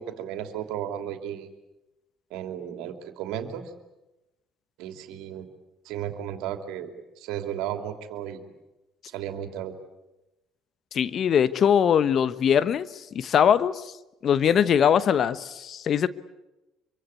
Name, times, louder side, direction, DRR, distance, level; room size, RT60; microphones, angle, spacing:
voice 1, 0.0-1.5 2.3-3.7 4.8-5.5 5.8-8.5 9.1-9.8, right 10 dB, 70° right, 7 dB, 3.0 m, -34 dB
voice 2, 10.9-13.9 14.2-16.1, left 8 dB, 50° left, 15 dB, 1.2 m, -22 dB
25.5 x 24.5 x 8.4 m, 0.98 s
hypercardioid pair, 60°, 0 cm